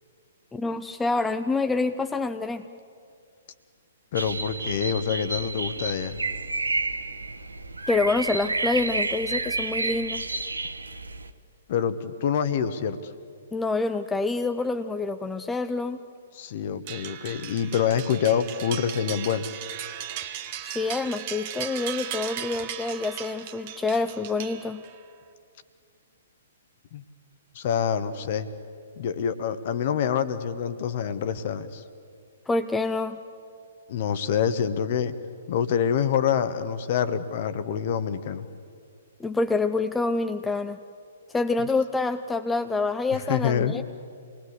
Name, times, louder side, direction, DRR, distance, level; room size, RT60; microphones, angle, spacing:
voice 1, 0.5-2.7 7.9-10.2 13.5-16.0 20.6-24.8 32.5-33.2 39.2-40.8 41.3-43.8, left 3 dB, 10° left, 8 dB, 0.6 m, -27 dB
voice 2, 4.1-6.2 11.7-13.1 16.3-19.4 26.9-27.0 27.5-28.5 29.0-31.8 33.9-35.1 35.5-38.5 43.3-43.8, left 8 dB, 45° left, 12 dB, 1.3 m, -26 dB
sound 1, 4.1-11.3, right 3 dB, 80° right, 1.0 m, -30 dB
sound 2, 16.9-25.0, right 10 dB, 35° right, 1.3 m, -37 dB
27.5 x 20.0 x 8.1 m, 2.3 s
figure-of-eight pair, 120°, 0 cm